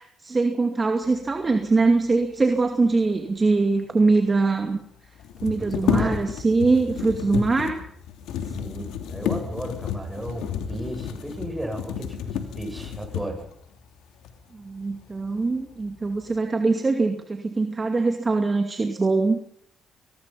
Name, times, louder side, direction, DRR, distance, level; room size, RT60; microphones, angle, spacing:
voice 1, 0.0-4.8 5.4-7.8 14.5-19.4, right 3 dB, 30° right, 4 dB, 2.4 m, -22 dB
sound 1, 3.7-4.0 5.2-13.6 14.2-14.4 14.8-15.4 15.8-16.3, left 8 dB, 90° left, 2.9 m, -31 dB
voice 2, 5.6-6.2 8.5-13.4, right 1 dB, 5° right, 4 dB, 7.6 m, -34 dB
25.0 x 20.0 x 5.7 m, 0.70 s
cardioid pair, 90°, 0 cm